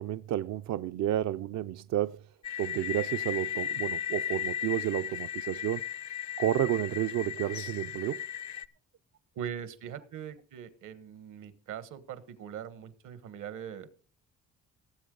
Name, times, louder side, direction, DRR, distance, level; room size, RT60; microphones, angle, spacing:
voice 1, 0.0-2.2 2.6-5.8 6.4-8.2, right 12 dB, 65° right, 0.5 m, -31 dB
sound 1, 2.4-8.6, left 10 dB, 65° left, 0.7 m, -36 dB
voice 2, 9.4-13.9, right 8 dB, 80° right, 1.3 m, -41 dB
18.0 x 7.7 x 3.8 m
cardioid pair, 90°, 30 cm